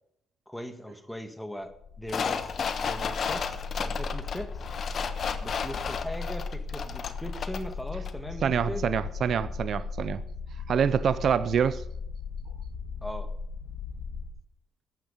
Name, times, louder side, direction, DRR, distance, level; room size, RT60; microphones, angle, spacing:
voice 1, 0.5-2.5 2.8-4.5 5.4-8.9 13.0-13.3, equal, 5° left, 8 dB, 1.8 m, -39 dB
sound 1, 1.7-14.3, left 4 dB, 85° left, 2.3 m, -37 dB
sound 2, 2.1-7.7 8.1-8.2, left 6 dB, 55° left, 1.1 m, -33 dB
voice 2, 8.4-10.2 10.7-11.8, right 8 dB, 60° right, 14 dB, 0.5 m, -26 dB
14.5 x 11.0 x 5.2 m, 0.74 s
cardioid pair, 90°, 0 cm